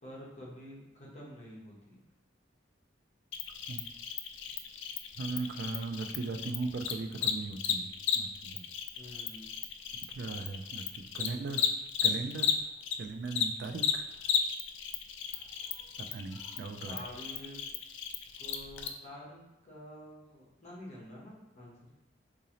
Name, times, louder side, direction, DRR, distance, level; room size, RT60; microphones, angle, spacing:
voice 1, 0.0-2.0 9.0-9.5 11.1-11.6 16.8-17.6 18.4-21.9, equal, 40° left, -5 dB, 1.0 m, -48 dB
Cricket, 3.3-13.0 13.3-18.9, left 8 dB, 75° left, 0.3 m, -34 dB
voice 2, 5.2-8.6 10.2-11.6 12.0-12.5 13.0-14.0 16.1-17.0, right 3 dB, 60° right, 6 dB, 0.3 m, -38 dB
3.8 x 2.6 x 2.9 m, 0.94 s
head